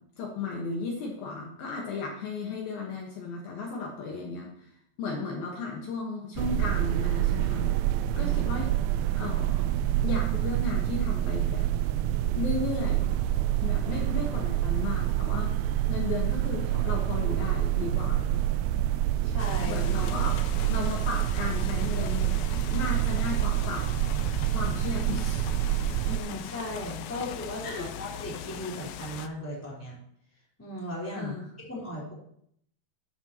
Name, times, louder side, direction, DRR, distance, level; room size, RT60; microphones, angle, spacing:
voice 1, 0.2-4.7 5.0-7.7 8.2-8.8 9.1-9.7 10.0-11.7 12.3-13.1 13.6-15.6 15.9-18.4 19.7-20.3 20.7-23.9 24.5-25.5 27.6-27.9 31.1-31.4, left 4 dB, 65° left, -1 dB, 3.0 m, -35 dB
sound 1, 6.4-26.2, right 13 dB, 90° right, 2.1 m, -27 dB
voice 2, 19.2-19.8 20.0-20.1 26.1-30.0 30.6-32.1, equal, 5° left, -5 dB, 3.5 m, -37 dB
sound 2, 19.4-29.3, left 11 dB, 90° left, 2.8 m, -40 dB
12.0 x 11.0 x 3.0 m, 0.69 s
omnidirectional pair, 4.8 m